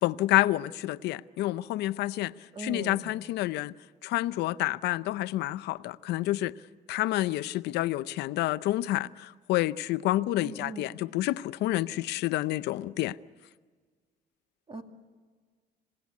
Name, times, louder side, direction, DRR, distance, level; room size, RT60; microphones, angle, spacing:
voice 1, 0.0-2.3 2.6-3.7 4.0-6.5 6.9-13.2, left 16 dB, 80° left, 0.6 m, -29 dB
voice 2, 2.5-3.0 10.4-10.9 14.7-14.8, right 3 dB, 30° right, 2.5 m, -39 dB
27.0 x 17.5 x 8.4 m
cardioid pair, 110°, 17 cm